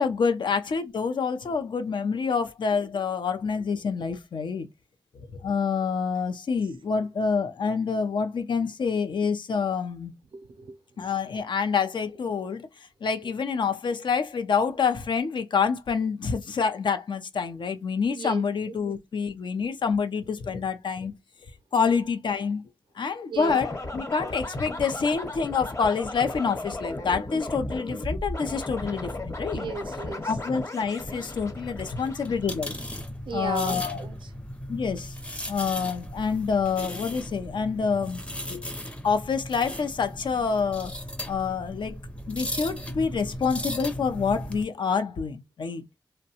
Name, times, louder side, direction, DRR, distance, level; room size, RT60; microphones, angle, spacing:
voice 1, 0.0-4.7 5.4-10.1 11.0-12.7 13.0-21.1 21.7-22.6 23.0-29.6 30.3-32.8 33.3-34.0 34.7-35.1 35.5-38.2 38.5-38.6 39.0-40.9 41.3-42.0 42.3-45.8, left 5 dB, 70° left, 0.5 m, -27 dB
voice 2, 10.3-11.1 18.1-18.8 23.3-23.6 29.5-30.4 33.3-34.3, right 4 dB, 80° right, 0.5 m, -36 dB
sound 1, 23.4-32.9, left 2 dB, 35° left, 1.0 m, -35 dB
sound 2, 31.0-44.6, equal, 15° left, 0.6 m, -37 dB
2.7 x 2.1 x 2.7 m
cardioid pair, 45°, 8 cm